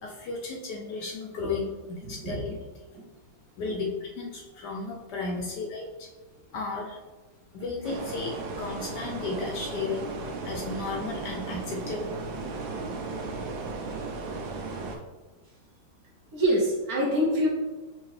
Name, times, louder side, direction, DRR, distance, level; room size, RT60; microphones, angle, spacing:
voice 1, 0.0-2.5 3.6-6.1 6.5-7.0 7.5-10.1 10.4-12.1, left 3 dB, 70° left, -1 dB, 1.0 m, -34 dB
voice 2, 2.1-2.4 2.9-3.0 16.3-17.5, equal, 60° right, -4 dB, 1.1 m, -25 dB
sound 1, 7.8-15.0, right 3 dB, 80° right, 1.4 m, -35 dB
5.5 x 2.7 x 3.1 m, 1.2 s
omnidirectional pair, 2.1 m